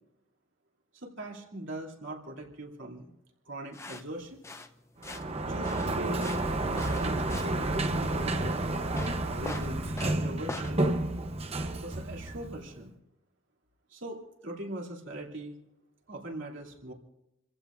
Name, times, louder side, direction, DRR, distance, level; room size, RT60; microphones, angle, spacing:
voice 1, 0.9-3.1 3.5-4.4 5.5-6.4 6.7-8.6 9.3-10.9 11.8-13.0 13.9-15.6 16.1-16.9, right 1 dB, 70° right, 0 dB, 2.9 m, -41 dB
sound 1, 3.7-10.7, left 2 dB, 15° left, 0.6 m, -43 dB
Sliding door, 5.0-12.8, right 2 dB, 30° right, 0.9 m, -31 dB
29.0 x 15.5 x 2.6 m, 0.90 s
head